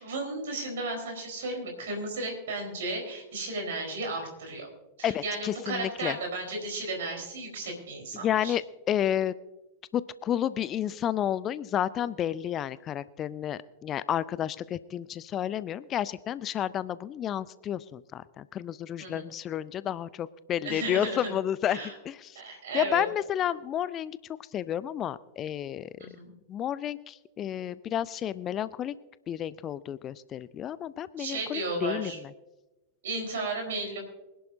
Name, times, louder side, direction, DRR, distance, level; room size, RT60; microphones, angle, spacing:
voice 1, 0.0-4.7 5.0-8.5 19.0-19.2 20.6-21.4 21.7-21.9 22.3-23.1 26.0-26.3 31.2-32.2 33.0-34.0, right 2 dB, 60° right, 2 dB, 4.2 m, -34 dB
voice 2, 5.0-6.2 8.2-9.3 9.9-24.2 24.5-25.9 26.5-29.0 29.3-32.1, left 10 dB, 30° left, 18 dB, 0.4 m, -31 dB
24.5 x 11.0 x 2.7 m, 1.1 s
figure-of-eight pair, 90°, 0 cm